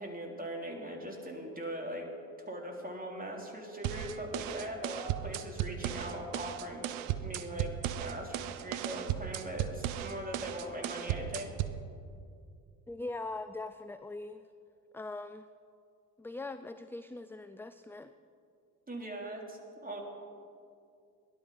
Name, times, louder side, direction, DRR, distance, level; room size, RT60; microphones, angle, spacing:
voice 1, 0.0-2.1 2.5-11.5 18.9-20.0, right 1 dB, 20° right, 0 dB, 3.5 m, -40 dB
sound 1, 3.8-11.8, right 11 dB, 75° right, 0.8 m, -36 dB
voice 2, 12.9-14.5 14.9-15.5 16.2-18.1, left 2 dB, 5° left, 11 dB, 0.4 m, -41 dB
17.5 x 11.5 x 5.6 m, 2.4 s
hypercardioid pair, 50°, 44 cm